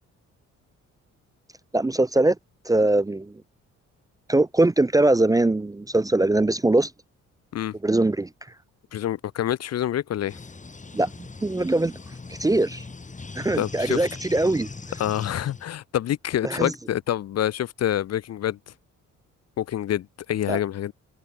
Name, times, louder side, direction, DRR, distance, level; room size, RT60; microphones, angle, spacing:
voice 1, 1.7-2.4 2.7-3.3 4.3-6.9 7.8-8.3 10.9-11.9 12.3-12.8 13.4-14.7 16.4-16.7 20.5-20.6, right 2 dB, 10° right, 0.6 m, -21 dB
voice 2, 8.9-10.4 13.6-14.1 15.0-18.6 19.6-20.9, left 11 dB, 55° left, 0.9 m, -27 dB
sound 1, 10.3-15.7, left 3 dB, 25° left, 5.6 m, -40 dB
cardioid pair, 90°, 30 cm